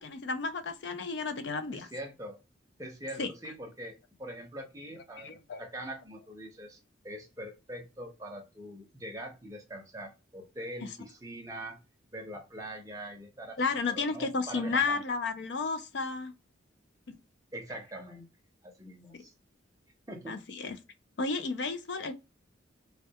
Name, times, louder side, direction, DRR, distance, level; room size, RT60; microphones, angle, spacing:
voice 1, 0.0-1.9 3.2-3.3 5.2-5.7 13.6-16.3 20.3-20.8 21.2-22.1, left 4 dB, 65° left, 0.4 m, -32 dB
voice 2, 1.7-2.4 2.8-6.8 7.0-11.8 12.1-13.6 13.9-15.0 17.5-18.2 18.6-19.3 20.1-20.4, right 1 dB, 15° right, 0.6 m, -43 dB
2.2 x 2.2 x 2.7 m
head